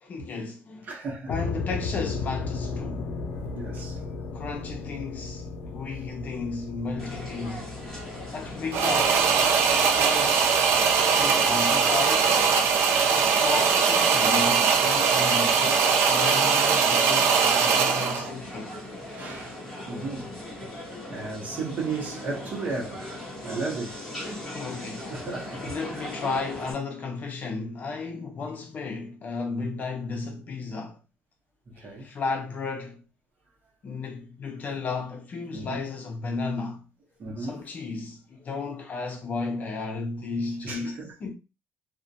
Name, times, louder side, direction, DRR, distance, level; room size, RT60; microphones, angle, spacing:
voice 1, 0.0-0.9 1.3-3.2 4.3-7.7 8.3-9.4 9.7-10.6 11.2-12.5 13.1-18.7 24.5-31.0 31.8-33.0 33.8-36.9 37.4-41.3, left 4 dB, 40° left, 0.6 m, -34 dB
voice 2, 0.8-1.3 3.5-4.0 13.2-13.4 19.0-20.3 21.1-24.0 25.1-25.6 25.9-26.0 31.7-32.1 35.5-35.8 37.2-37.7 40.6-41.1, right 3 dB, 45° right, 0.8 m, -35 dB
sound 1, 1.3-16.5, left 4 dB, 90° left, 0.4 m, -37 dB
sound 2, 7.0-26.7, left 1 dB, 5° left, 1.2 m, -39 dB
sound 3, 8.7-18.3, right 6 dB, 75° right, 0.4 m, -21 dB
2.4 x 2.1 x 2.6 m
cardioid pair, 135°, 4 cm